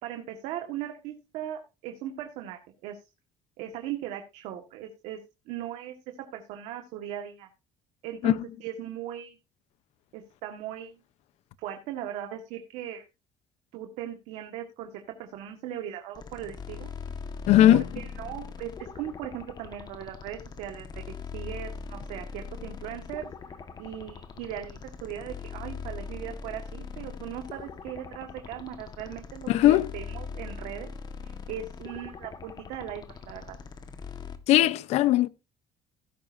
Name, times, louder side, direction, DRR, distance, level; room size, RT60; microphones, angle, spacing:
voice 1, 0.0-3.0 3.6-5.2 5.5-6.0 6.3-7.5 8.0-9.4 10.1-11.0 11.6-13.1 13.7-14.9 15.2-16.9 17.7-21.0 21.3-23.3 23.8-30.9 31.2-33.6, right 10 dB, 85° right, 1.7 m, -38 dB
sound 1, 16.1-34.4, left 5 dB, 40° left, 1.5 m, -41 dB
voice 2, 17.5-17.8 29.5-29.9 34.5-35.3, left 13 dB, 75° left, 0.9 m, -19 dB
16.5 x 9.0 x 2.7 m
cardioid pair, 115°, 11 cm